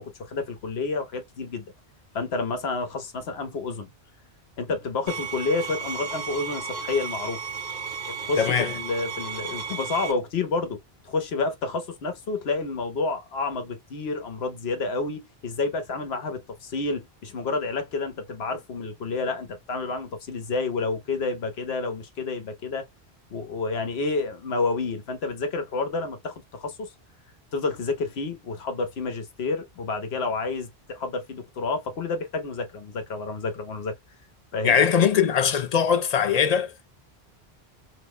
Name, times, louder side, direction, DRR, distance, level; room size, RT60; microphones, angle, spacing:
voice 1, 0.0-1.7 2.1-3.9 4.6-7.4 8.2-10.8 11.0-22.8 23.3-26.9 27.5-33.9 34.5-34.8, left 3 dB, 75° left, 1.0 m, -29 dB
sound 1, 5.1-10.1, right 5 dB, 45° right, 1.0 m, -34 dB
voice 2, 8.4-8.7 34.6-36.9, left 7 dB, 50° left, 0.5 m, -21 dB
2.7 x 2.1 x 3.5 m
omnidirectional pair, 1.1 m